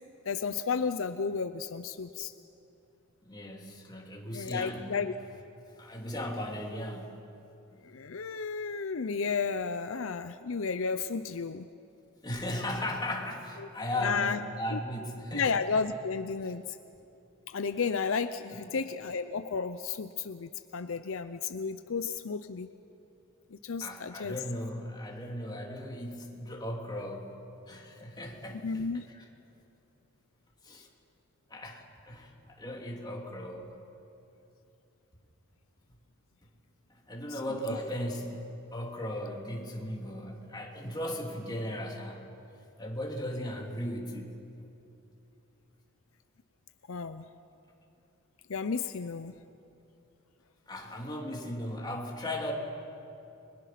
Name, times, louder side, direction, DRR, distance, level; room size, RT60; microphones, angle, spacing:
voice 1, 0.3-2.3 4.3-5.1 7.8-11.7 13.6-13.7 14.0-14.4 14.7-14.8 15.3-16.8 17.5-22.7 23.5-24.4 28.6-29.1 37.3-37.4 37.7-37.8 46.9-47.3 48.5-49.3, left 5 dB, 70° left, 10 dB, 0.6 m, -33 dB
voice 2, 3.2-5.0 5.8-7.1 12.2-15.5 18.5-18.7 23.8-27.3 27.7-28.8 29.1-29.2 30.6-30.9 31.5-33.7 37.1-42.3 42.8-44.3 50.7-52.5, left 1 dB, 20° left, -1 dB, 3.0 m, -37 dB
30.0 x 22.5 x 5.9 m, 2.8 s
head